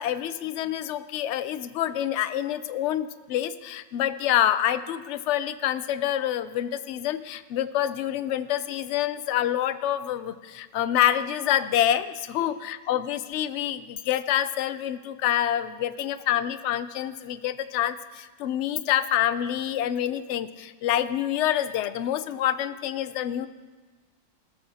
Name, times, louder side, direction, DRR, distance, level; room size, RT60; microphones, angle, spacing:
voice 1, 0.0-23.5, left 11 dB, 65° left, 13 dB, 0.7 m, -27 dB
17.5 x 14.0 x 2.8 m, 1.3 s
omnidirectional pair, 1.6 m